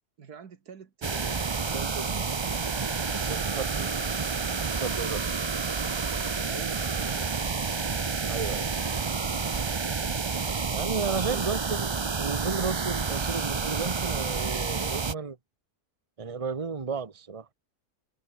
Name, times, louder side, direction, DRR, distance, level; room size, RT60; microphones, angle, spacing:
voice 1, 0.2-2.4 3.1-4.1 6.1-7.8 11.3-11.6, right 6 dB, 90° right, 2.2 m, -46 dB
sound 1, 1.0-15.1, right 5 dB, 40° right, 0.4 m, -29 dB
voice 2, 1.7-2.2 2.7-3.7 4.6-5.4 8.3-8.8 10.7-11.9 12.2-15.4 16.2-17.5, right 5 dB, 25° right, 1.3 m, -33 dB
omnidirectional pair, 1.6 m